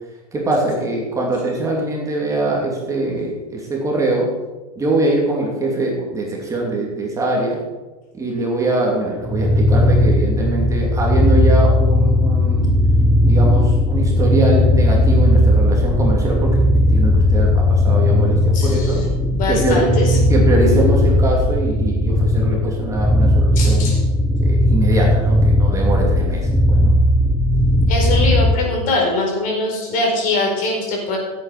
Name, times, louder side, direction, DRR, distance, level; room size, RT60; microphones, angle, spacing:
voice 1, 0.3-4.3 4.8-7.6 8.1-12.7 13.2-19.0 19.5-19.9 20.3-23.9 24.4-26.9, right 2 dB, 15° right, -1 dB, 2.9 m, -22 dB
sound 1, 9.2-28.6, left 1 dB, ahead, 0.9 m, -16 dB
voice 2, 18.5-19.0 19.3-20.2 23.6-24.0 27.9-31.2, left 2 dB, 45° left, 0 dB, 4.7 m, -22 dB
15.5 x 8.6 x 5.1 m, 1.2 s
hypercardioid pair, 125°, 20 cm